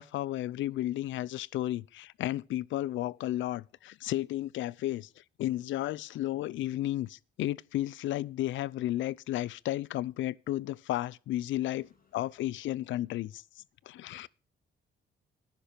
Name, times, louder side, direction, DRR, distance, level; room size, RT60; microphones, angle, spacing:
voice 1, 0.0-5.1 5.4-11.9 12.1-14.3, left 14 dB, 75° left, 0.5 m, -33 dB
voice 2, 11.6-12.7 13.9-14.3, left 6 dB, 45° left, 1.9 m, -68 dB
10.5 x 10.5 x 5.2 m
cardioid pair, 90°, 20 cm